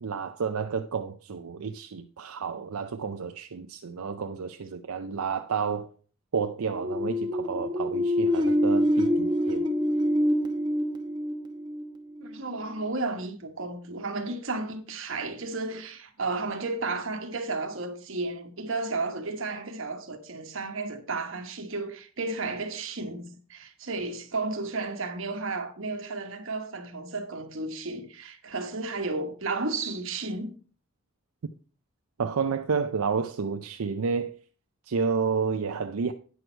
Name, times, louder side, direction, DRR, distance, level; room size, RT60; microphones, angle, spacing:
voice 1, 0.0-5.9 6.3-9.6 32.2-34.3 34.9-36.1, right 5 dB, 80° right, 0.5 m, -30 dB
sound 1, 6.7-12.3, equal, 20° right, 0.9 m, -26 dB
voice 2, 12.2-30.6, right 3 dB, 60° right, 1.2 m, -33 dB
9.4 x 6.2 x 4.5 m
head